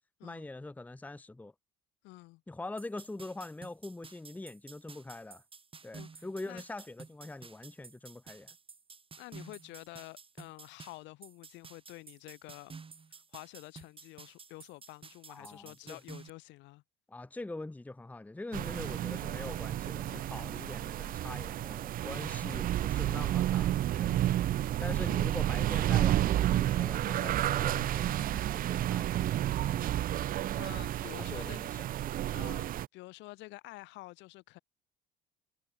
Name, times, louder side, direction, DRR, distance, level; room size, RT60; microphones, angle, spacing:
voice 1, 0.2-1.5 2.5-5.4 5.8-8.5 15.3-16.0 17.1-24.2 24.8-29.8 31.2-31.9, left 2 dB, 10° left, 0.9 m, -43 dB
voice 2, 2.0-2.4 5.9-6.6 9.2-12.7 13.1-16.8 18.8-19.1 20.4-20.6 24.1-24.8 29.6-29.9 30.2-31.6 32.3-34.6, left 20 dB, 65° left, 1.9 m, -49 dB
sound 1, 2.8-16.3, right 5 dB, 25° right, 4.6 m, -52 dB
sound 2, 18.5-32.9, right 13 dB, 45° right, 0.6 m, -31 dB
hypercardioid pair, 75°, 20 cm